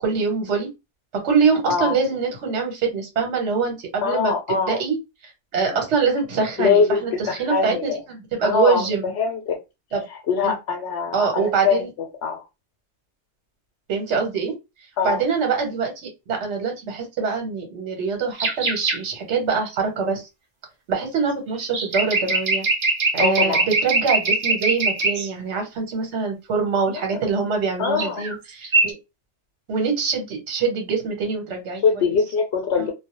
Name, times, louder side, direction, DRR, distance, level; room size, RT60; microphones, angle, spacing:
voice 1, 0.0-0.7 1.2-5.0 5.2-9.1 9.9-10.0 10.4-10.5 11.1-11.9 13.9-14.5 15.0-20.2 20.9-22.7 23.1-28.9 29.7-32.2, right 5 dB, 80° right, 3 dB, 1.0 m, -24 dB
voice 2, 4.0-4.8 5.7-5.9 6.6-8.0 8.4-8.9 9.1-9.6 10.3-11.8 12.2-12.4 15.0-15.2 23.2-23.6 26.9-27.2 27.8-28.2 31.8-32.9, left 5 dB, 70° left, 2 dB, 0.8 m, -22 dB
sound 1, 18.4-19.0 21.6-25.3 27.8-28.3 28.6-28.9, right 3 dB, 45° right, 0.4 m, -22 dB
2.2 x 2.0 x 2.9 m, 0.24 s
omnidirectional pair, 1.2 m